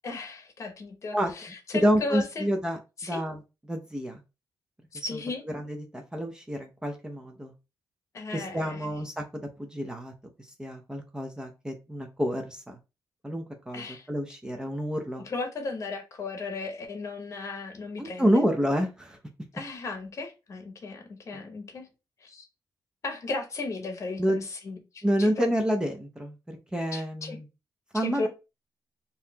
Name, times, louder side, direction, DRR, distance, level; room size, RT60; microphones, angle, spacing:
voice 1, 0.0-2.5 3.0-3.2 4.9-5.4 8.1-9.0 13.7-14.1 15.2-18.4 19.5-21.9 22.2-22.5 23.0-25.5 26.9-27.4 28.0-28.3, left 3 dB, 40° left, 0.8 m, -35 dB
voice 2, 1.7-2.8 3.0-3.4 3.7-4.2 4.9-5.2 5.5-7.5 8.3-9.2 9.6-10.1 10.6-12.8 13.2-15.2 18.0-19.2 21.3-21.4 24.2-24.4 25.0-26.4 26.7-27.5 27.9-28.3, equal, 10° right, 0.5 m, -28 dB
4.0 x 2.7 x 2.8 m
wide cardioid pair, 160°, 8 cm